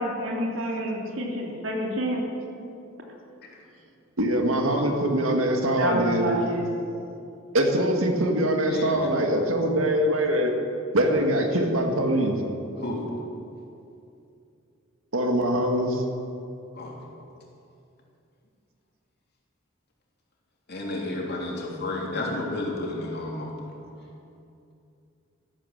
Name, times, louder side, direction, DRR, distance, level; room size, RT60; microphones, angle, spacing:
voice 1, 0.0-2.2 5.8-6.7, equal, 70° right, 0 dB, 3.0 m, -28 dB
voice 2, 4.2-6.4 7.5-10.5 10.9-12.4 15.1-16.0, right 1 dB, 90° right, 3 dB, 2.0 m, -23 dB
voice 3, 4.7-5.0 8.7-9.3 12.8-13.0 16.7-17.0 20.7-23.5, left 2 dB, 55° left, -2 dB, 3.2 m, -32 dB
14.0 x 12.5 x 7.5 m, 2.6 s
head